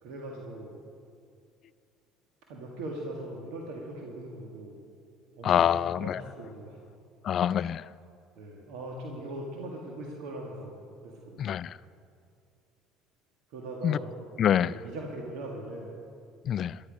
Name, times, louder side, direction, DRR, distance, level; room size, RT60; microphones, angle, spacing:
voice 1, 0.0-0.8 2.5-4.8 5.4-6.8 8.3-11.6 13.5-14.2 14.6-15.9, right 1 dB, 75° right, 1.7 m, -40 dB
voice 2, 5.4-6.2 7.2-7.9 11.4-11.8 13.8-14.0 14.4-14.7 16.4-16.8, left 9 dB, 50° left, 0.3 m, -26 dB
13.5 x 11.5 x 5.2 m
supercardioid pair, 90°, 0 cm